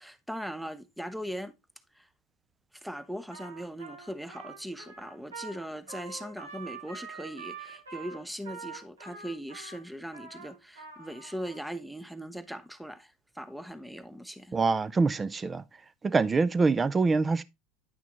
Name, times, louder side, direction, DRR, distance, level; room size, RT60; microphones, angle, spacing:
voice 1, 0.0-1.6 1.9-2.1 2.7-14.5, equal, ahead, 0.8 m, -40 dB
Trumpet, 3.3-11.6, right 5 dB, 85° right, 2.1 m, -45 dB
voice 2, 14.5-15.6 16.0-17.4, right 4 dB, 20° right, 0.5 m, -25 dB
9.5 x 5.9 x 3.0 m
figure-of-eight pair, 75°, 0 cm